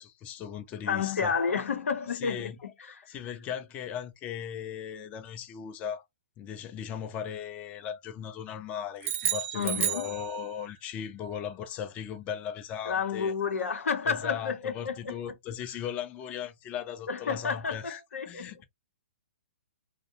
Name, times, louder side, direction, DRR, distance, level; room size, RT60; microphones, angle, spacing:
voice 1, 0.0-1.6 2.1-2.7 3.0-6.0 6.4-13.7 14.0-18.0 18.3-18.6, left 8 dB, 20° left, 0.3 m, -38 dB
voice 2, 0.9-2.5 2.9-3.2 9.5-10.0 12.9-15.2 17.1-18.6, left 6 dB, 85° left, 0.7 m, -31 dB
sound 1, 9.0-10.8, right 10 dB, 65° right, 0.7 m, -31 dB
2.6 x 2.0 x 2.7 m
hypercardioid pair, 140°, 7 cm